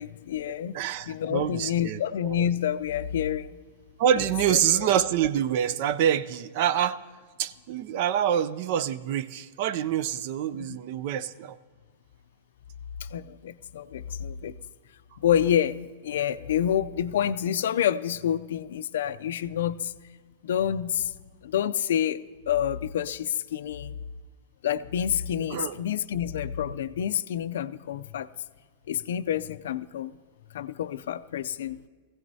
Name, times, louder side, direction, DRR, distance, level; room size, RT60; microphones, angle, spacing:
voice 1, 0.0-0.8 1.1-3.5 4.5-4.9 10.6-10.8 13.0-14.5 15.2-19.9 20.4-21.1 21.4-22.2 22.5-23.9 24.6-28.3 28.9-30.1 30.5-31.8, left 10 dB, 70° left, 14 dB, 0.4 m, -28 dB
voice 2, 0.7-2.4 4.0-7.0 7.4-11.6 25.5-25.8, right 10 dB, 40° right, 16 dB, 0.4 m, -26 dB
20.5 x 16.0 x 2.7 m, 1.5 s
supercardioid pair, 175°, 0 cm